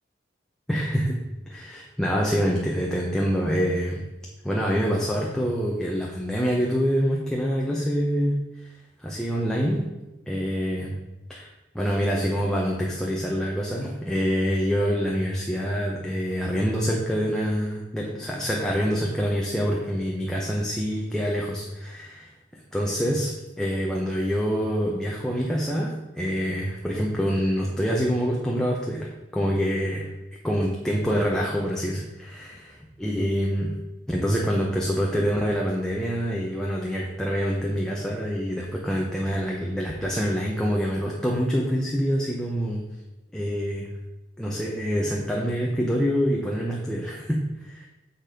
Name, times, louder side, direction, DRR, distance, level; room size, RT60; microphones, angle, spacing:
voice 1, 0.7-4.0 4.4-8.7 9.0-9.9 10.3-11.0 11.3-11.5 11.7-30.1 30.4-32.6 33.0-33.8 34.1-42.8 43.3-43.9 44.4-47.9, equal, 5° left, -2 dB, 0.8 m, -26 dB
8.8 x 4.2 x 5.1 m, 1.0 s
head